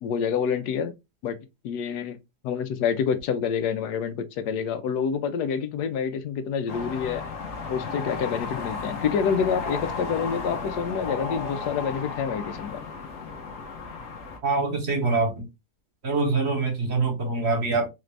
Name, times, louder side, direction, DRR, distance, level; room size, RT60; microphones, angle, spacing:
voice 1, 0.0-0.9 1.2-1.4 1.6-2.2 2.4-7.2 7.7-12.8, left 7 dB, 85° left, 1.2 m, -27 dB
sound 1, 6.7-14.4, left 4 dB, 50° left, 1.2 m, -34 dB
voice 2, 14.4-15.5 16.0-17.9, right 3 dB, 45° right, 1.2 m, -24 dB
4.3 x 2.5 x 3.2 m
omnidirectional pair, 1.7 m